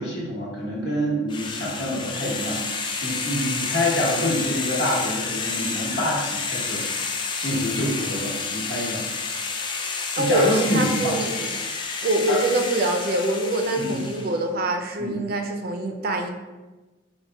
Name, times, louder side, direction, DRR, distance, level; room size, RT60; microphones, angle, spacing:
voice 1, 0.0-2.6 3.0-6.8 7.4-9.0 10.1-11.2 12.3-12.4 13.8-14.1 15.0-15.1, equal, 65° left, -4 dB, 1.1 m, -26 dB
sound 1, 1.3-14.4, left 4 dB, 25° left, 0.3 m, -30 dB
voice 2, 10.2-11.5 12.0-16.3, right 1 dB, 50° right, 4 dB, 0.4 m, -24 dB
4.2 x 2.2 x 3.3 m, 1.1 s
head